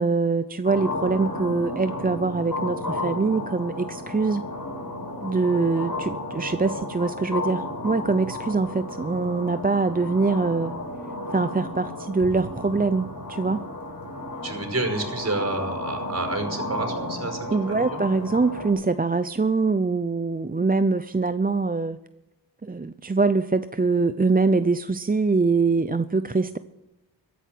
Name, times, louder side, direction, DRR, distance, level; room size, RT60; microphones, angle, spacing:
voice 1, 0.0-4.4 5.2-10.7 11.3-13.7 17.5-22.0 22.6-26.6, right 4 dB, 20° right, 12 dB, 0.6 m, -23 dB
sound 1, 0.6-18.7, left 2 dB, 50° left, 7.2 m, -33 dB
voice 2, 14.4-18.0, right 2 dB, 35° right, 5 dB, 5.3 m, -29 dB
14.5 x 10.5 x 7.8 m, 0.97 s
cardioid pair, 40°, 43 cm